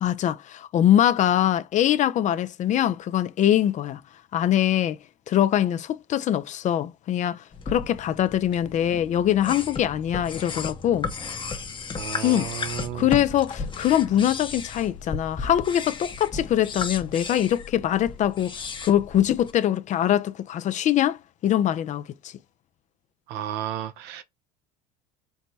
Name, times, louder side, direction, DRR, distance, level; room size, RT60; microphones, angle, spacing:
voice 1, 0.0-4.0 4.3-5.0 5.3-11.1 12.2-12.5 12.9-18.5 18.8-22.3, left 11 dB, 40° left, 0.4 m, -23 dB
sound 1, 7.5-19.5, left 5 dB, 25° left, 0.8 m, -35 dB
voice 2, 12.0-13.1 23.3-24.2, right 11 dB, 65° right, 0.7 m, -33 dB
4.6 x 2.2 x 4.0 m
supercardioid pair, 90°, 19 cm